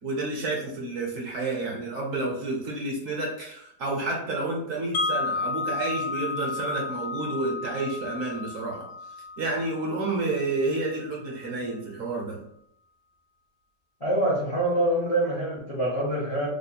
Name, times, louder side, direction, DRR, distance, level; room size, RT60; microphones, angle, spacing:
voice 1, 0.0-8.9 9.4-12.4, right 2 dB, 60° right, -1 dB, 1.0 m, -30 dB
Wind chime, 4.9-10.9, left 3 dB, 75° left, 1.3 m, -32 dB
voice 2, 14.0-16.5, right 1 dB, 35° left, -5 dB, 0.5 m, -25 dB
3.3 x 2.1 x 4.0 m, 0.73 s
omnidirectional pair, 1.8 m